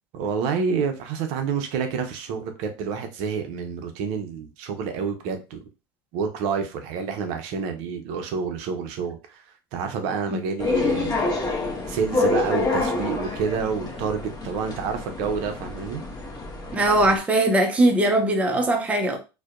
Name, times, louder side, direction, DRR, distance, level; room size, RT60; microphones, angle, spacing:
voice 1, 0.1-5.6 6.1-9.4 9.7-11.1 11.9-16.0, right 6 dB, 60° right, 0.6 m, -28 dB
sound 1, 10.6-17.2, left 3 dB, 30° left, 0.8 m, -27 dB
voice 2, 16.7-19.2, right 1 dB, 10° right, 0.5 m, -20 dB
2.6 x 2.1 x 2.4 m
hypercardioid pair, 100°, 14 cm